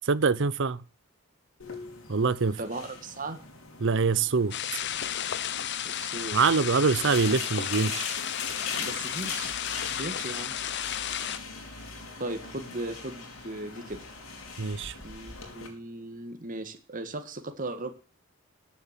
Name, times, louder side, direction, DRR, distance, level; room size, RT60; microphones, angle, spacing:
voice 1, 0.1-0.8 2.1-2.6 3.8-4.5 6.3-8.0 14.6-14.9, right 5 dB, 60° right, 0.7 m, -24 dB
sound 1, 1.6-15.7, left 4 dB, 75° left, 3.8 m, -41 dB
voice 2, 2.6-3.4 5.8-6.4 8.8-10.5 12.2-14.0 14.9-17.9, right 2 dB, 40° right, 1.7 m, -37 dB
sound 2, 4.5-11.4, left 10 dB, 55° left, 0.8 m, -33 dB
14.0 x 7.3 x 7.4 m
head